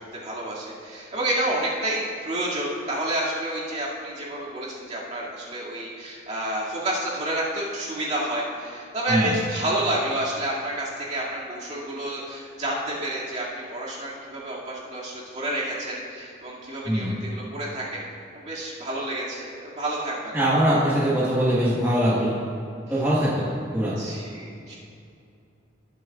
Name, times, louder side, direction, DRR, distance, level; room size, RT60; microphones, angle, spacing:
voice 1, 0.1-18.0 18.3-20.4 22.9-23.0 24.0-24.8, right 1 dB, 40° right, -7 dB, 2.3 m, -29 dB
voice 2, 20.3-22.3 22.9-23.9, equal, 10° right, -9 dB, 1.5 m, -22 dB
18.5 x 7.4 x 2.4 m, 2.6 s
head